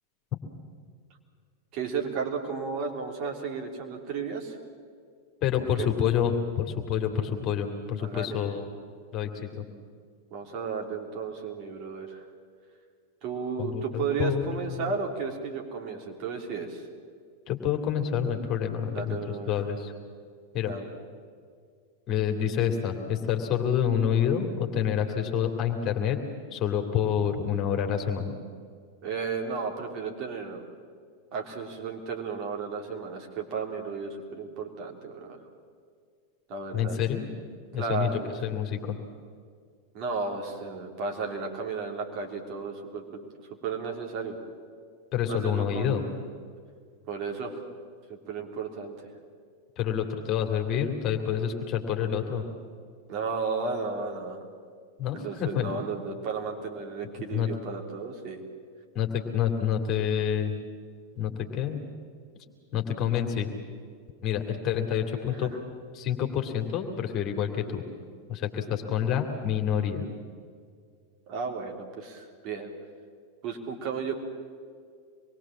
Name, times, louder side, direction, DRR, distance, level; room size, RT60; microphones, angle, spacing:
voice 1, 1.7-4.6 5.8-5.9 8.0-8.4 10.3-12.2 13.2-16.8 19.0-19.5 20.6-20.9 29.0-30.6 31.3-35.4 36.5-37.0 37.8-38.3 39.9-43.3 43.6-44.4 45.3-45.9 47.1-47.6 48.3-48.9 53.1-54.4 55.1-58.4 65.3-65.5 71.3-72.7 73.4-74.2, right 5 dB, 40° right, 2 dB, 3.5 m, -33 dB
voice 2, 5.4-8.7 9.1-9.5 13.6-14.9 17.5-19.2 19.5-19.9 20.5-20.7 22.1-26.2 26.5-28.3 36.7-37.3 37.7-39.0 45.1-46.0 49.8-52.4 55.0-55.7 57.3-57.5 58.9-60.5 61.2-61.8 62.7-63.5 64.2-65.5 65.9-67.8 68.3-70.1, left 8 dB, 35° left, 4 dB, 2.8 m, -28 dB
26.0 x 22.0 x 7.5 m, 2.1 s
figure-of-eight pair, 90°, 0 cm